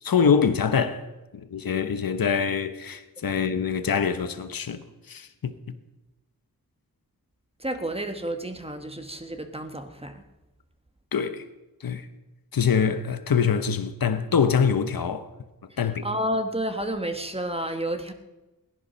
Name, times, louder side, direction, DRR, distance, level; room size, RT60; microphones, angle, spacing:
voice 1, 0.0-1.1 1.3-5.8 11.1-11.5 11.8-12.1 12.5-15.3 15.8-16.1, left 6 dB, 70° left, 1.0 m, -24 dB
voice 2, 7.6-10.2 16.0-18.1, right 1 dB, 15° right, 1.4 m, -30 dB
17.0 x 11.0 x 5.6 m
wide cardioid pair, 60°, 36 cm